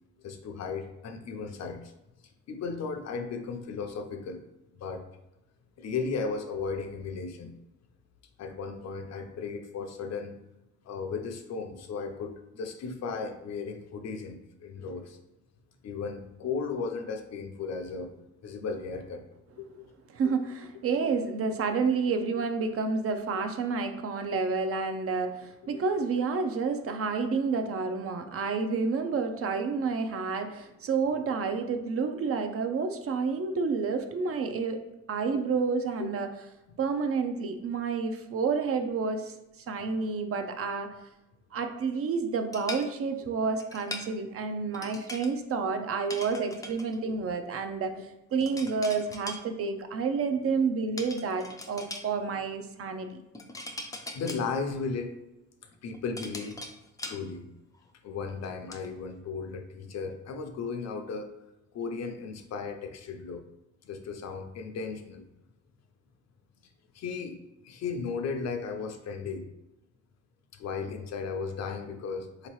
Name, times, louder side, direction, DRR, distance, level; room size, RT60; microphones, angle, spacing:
voice 1, 0.2-1.9 2.5-4.4 4.8-5.0 5.8-7.5 8.4-10.4 10.8-15.2 15.8-19.2 19.6-19.8 25.6-25.8 28.3-28.5 36.0-36.1 47.0-47.2 54.1-55.1 55.8-56.6 57.1-57.4 58.0-61.3 61.7-63.4 63.8-65.2 66.9-67.4 67.6-69.4 70.5-72.5, left 5 dB, 60° left, 6 dB, 0.6 m, -35 dB
voice 2, 20.1-34.8 35.1-36.3 36.8-39.3 39.7-40.9 41.5-53.2, right 5 dB, 50° right, 7 dB, 0.5 m, -29 dB
sound 1, 42.5-42.9 43.6-44.1 44.7-45.3 46.1-47.0 48.4-49.4 51.0-52.1 53.3-54.4 55.7-57.2 57.7-57.9 58.3-58.9, left 2 dB, 10° left, 0.4 m, -41 dB
3.7 x 2.9 x 3.1 m, 0.92 s
cardioid pair, 90°, 30 cm